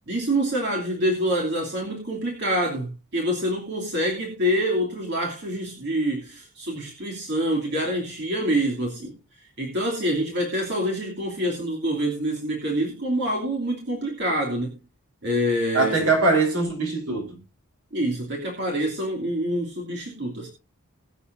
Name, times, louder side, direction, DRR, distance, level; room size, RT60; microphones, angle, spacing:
voice 1, 0.1-9.2 9.6-14.8 15.2-16.1 17.9-20.5, equal, 50° right, 2.9 m, -26 dB
voice 2, 15.7-17.4, right 3 dB, 75° right, 4.4 m, -22 dB
21.5 x 8.2 x 2.7 m
head